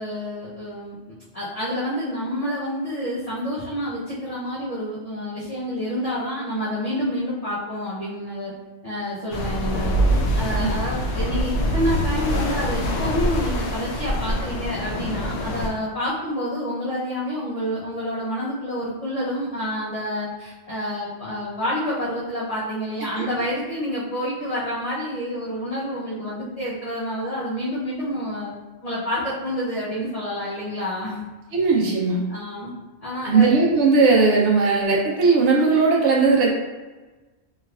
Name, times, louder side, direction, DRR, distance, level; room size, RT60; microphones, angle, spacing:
voice 1, 0.0-8.5 8.8-10.0 10.3-28.5 28.8-31.2 32.3-32.7 33.0-33.5, equal, 40° left, -9 dB, 0.6 m, -28 dB
sound 1, 9.3-15.7, equal, 75° left, 0.9 m, -24 dB
voice 2, 31.5-32.2 33.2-36.5, right 4 dB, 65° right, -2 dB, 1.0 m, -18 dB
3.3 x 3.1 x 2.4 m, 1.2 s
omnidirectional pair, 1.3 m